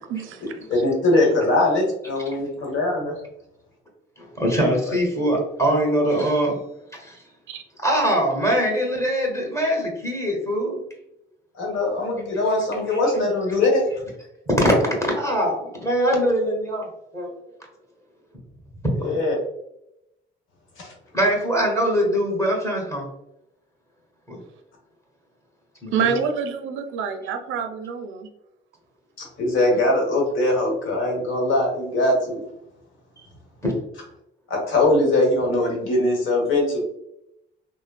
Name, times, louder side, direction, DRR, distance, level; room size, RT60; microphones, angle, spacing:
voice 1, 0.1-0.4 7.5-7.6 25.9-28.3, right 6 dB, 80° right, 6 dB, 0.4 m, -27 dB
voice 2, 0.7-3.1 4.8-4.9 11.5-13.9 19.0-19.3 20.8-20.9 29.2-32.4 34.5-36.8, left 2 dB, 80° left, 0 dB, 1.0 m, -21 dB
voice 3, 4.2-6.6 6.9-7.2 7.8-10.8 14.5-16.9 17.1-17.3 19.0-19.2 21.1-23.1 24.3-24.4 25.8-26.2 33.6-33.7, equal, 15° left, -1 dB, 1.2 m, -22 dB
3.4 x 2.0 x 2.2 m, 0.82 s
cardioid pair, 90°, 20 cm